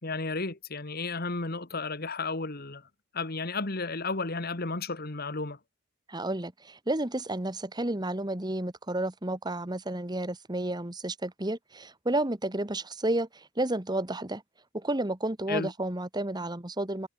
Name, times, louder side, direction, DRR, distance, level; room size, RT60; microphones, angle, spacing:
voice 1, 0.0-2.9 3.1-5.6 15.5-15.7, left 3 dB, 45° left, 1.8 m, -33 dB
voice 2, 6.1-13.3 13.6-14.4 14.7-17.1, right 1 dB, 20° right, 1.3 m, -31 dB
head